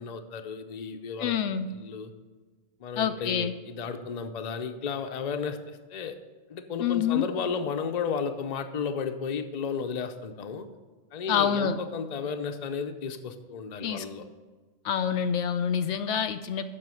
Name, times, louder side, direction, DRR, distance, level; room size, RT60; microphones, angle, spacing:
voice 1, 0.0-1.3 1.7-2.1 2.8-6.2 6.5-10.7 11.1-14.2, left 5 dB, 40° left, 7 dB, 0.7 m, -33 dB
voice 2, 1.2-1.7 3.0-3.5 6.8-7.3 11.3-11.8 13.8-14.0 14.8-16.6, left 8 dB, 70° left, 9 dB, 0.8 m, -27 dB
7.8 x 6.2 x 7.7 m, 1.3 s
omnidirectional pair, 1.3 m